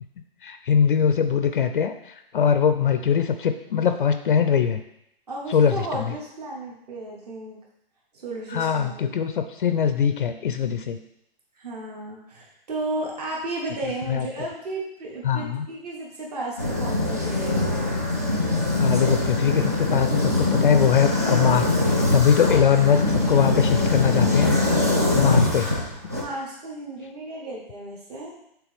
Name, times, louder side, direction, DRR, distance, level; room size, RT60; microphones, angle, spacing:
voice 1, 0.4-2.0 2.3-4.8 5.5-6.1 8.5-11.0 14.1-14.3 15.2-15.7 18.8-24.5 25.1-25.7, left 7 dB, 60° left, 8 dB, 0.5 m, -22 dB
voice 2, 5.3-7.6 8.1-9.1 11.6-17.7 26.1-28.3, right 2 dB, 40° right, -3 dB, 1.3 m, -34 dB
sound 1, 16.6-26.2, left 2 dB, 15° right, 0.3 m, -23 dB
7.4 x 3.7 x 3.5 m, 0.77 s
hypercardioid pair, 170°, 30 cm